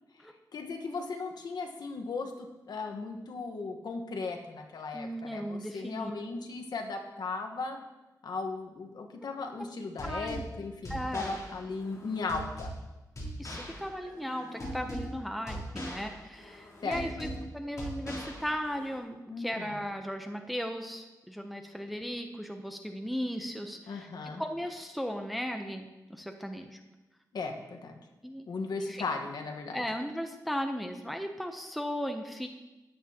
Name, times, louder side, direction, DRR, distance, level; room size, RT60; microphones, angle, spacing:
voice 1, 0.5-7.8 8.2-12.7 16.8-17.1 19.3-19.8 23.9-24.4 27.3-28.0 28.5-29.8, left 4 dB, 80° left, 4 dB, 1.3 m, -37 dB
voice 2, 4.9-6.1 10.0-10.4 10.9-11.4 13.2-17.3 17.5-24.1 24.4-26.8 28.2-28.5 28.8-29.0 29.7-32.5, equal, ahead, 5 dB, 0.7 m, -36 dB
sound 1, 10.0-19.0, equal, 45° left, 3.4 m, -41 dB
13.5 x 9.8 x 2.9 m, 1.1 s
wide cardioid pair, 130°, 7 cm